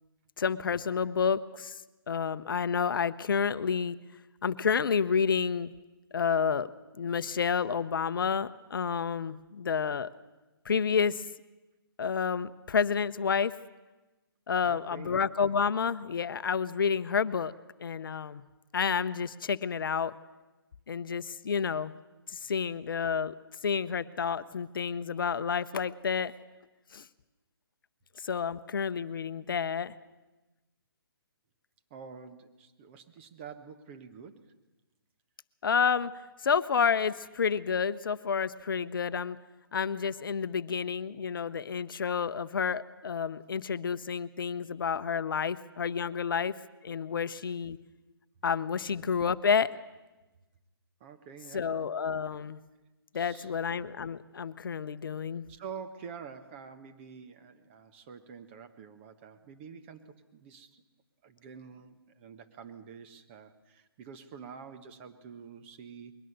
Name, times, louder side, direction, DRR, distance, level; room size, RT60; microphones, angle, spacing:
voice 1, 0.4-1.8 2.1-4.0 4.4-5.7 6.1-6.7 7.0-10.1 10.6-11.3 12.0-13.5 14.5-17.5 17.8-18.4 18.7-20.1 20.9-21.9 22.3-23.3 23.6-26.3 26.9-27.1 28.2-29.9 35.6-36.1 36.4-39.4 39.7-46.6 46.8-47.8 48.4-49.7 51.5-52.6 53.1-55.5, left 6 dB, 60° left, 14 dB, 0.7 m, -29 dB
voice 2, 14.6-15.2 31.9-34.5 46.1-46.2 51.0-51.7 53.1-53.6 55.5-60.8 61.2-66.1, right 6 dB, 30° right, 8 dB, 1.2 m, -47 dB
22.0 x 18.5 x 6.7 m, 1.1 s
figure-of-eight pair, 140°, 13 cm